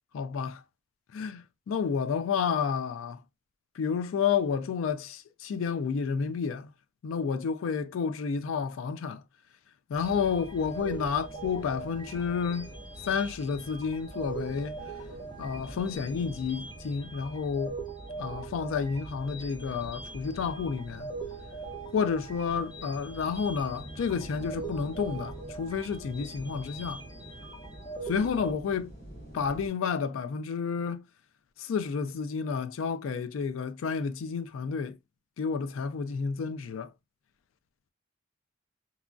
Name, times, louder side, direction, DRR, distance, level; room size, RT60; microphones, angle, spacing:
voice 1, 0.1-0.6 1.1-3.2 3.8-6.7 7.0-9.2 9.9-12.7 13.0-14.7 15.4-17.8 18.2-21.1 21.9-27.0 28.0-28.9 29.3-31.0 31.6-35.0 35.4-36.9, left 6 dB, 75° left, 0.3 m, -30 dB
sound 1, 9.9-29.7, equal, 50° left, 1.5 m, -49 dB
sound 2, 10.0-28.5, right 3 dB, 20° left, 0.9 m, -42 dB
2.9 x 2.5 x 2.2 m
head